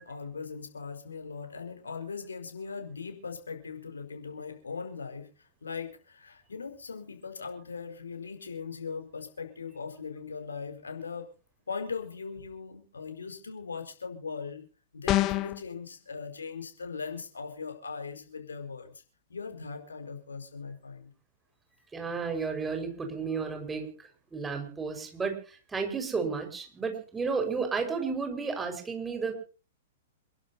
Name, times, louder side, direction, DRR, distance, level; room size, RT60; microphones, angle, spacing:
voice 1, 0.0-11.3 11.7-14.7 14.9-19.0 19.3-21.1, left 5 dB, 70° left, 5 dB, 5.0 m, -39 dB
sound 1, 15.1-15.6, left 16 dB, 30° left, 1.1 m, -25 dB
voice 2, 21.9-29.3, right 5 dB, 10° right, 5 dB, 5.3 m, -32 dB
28.5 x 12.0 x 2.8 m, 0.37 s
figure-of-eight pair, 105°, 0 cm